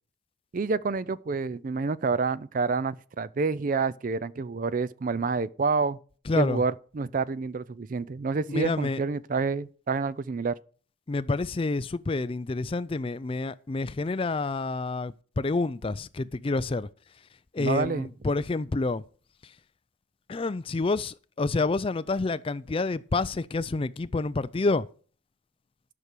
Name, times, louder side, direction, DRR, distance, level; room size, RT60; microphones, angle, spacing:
voice 1, 0.5-6.0 6.4-10.5 17.6-18.1, right 4 dB, 45° right, 0.4 m, -28 dB
voice 2, 6.3-6.6 8.5-9.0 11.1-16.9 17.5-19.0 20.3-24.9, left 3 dB, 30° left, 0.4 m, -28 dB
11.0 x 6.1 x 6.6 m
head